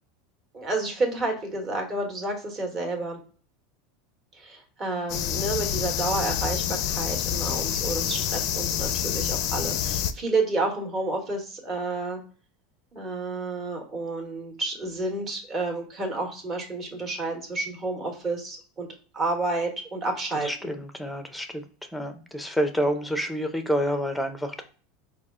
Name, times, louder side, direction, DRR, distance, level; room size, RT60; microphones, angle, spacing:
voice 1, 0.5-3.2 4.3-12.2 12.9-18.9 19.1-20.5, right 2 dB, 30° right, 1 dB, 1.2 m, -30 dB
sound 1, 5.1-10.1, left 10 dB, 55° left, 0.4 m, -27 dB
voice 2, 20.4-21.6 21.9-24.6, equal, ahead, 7 dB, 0.6 m, -28 dB
4.5 x 2.4 x 3.6 m, 0.40 s
supercardioid pair, 130°, 0 cm